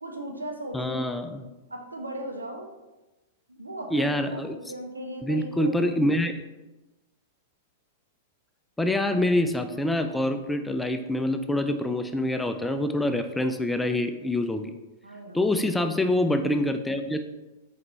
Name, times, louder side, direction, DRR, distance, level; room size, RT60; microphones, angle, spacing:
voice 1, 0.0-1.1 1.7-2.7 3.5-5.9 15.0-15.5, right 1 dB, 80° right, 3 dB, 0.7 m, -37 dB
voice 2, 0.7-1.4 3.9-4.6 5.2-6.3 8.8-14.7 15.3-17.2, left 1 dB, 5° left, 7 dB, 0.3 m, -25 dB
4.4 x 3.8 x 3.1 m, 1.1 s
figure-of-eight pair, 100°, 0 cm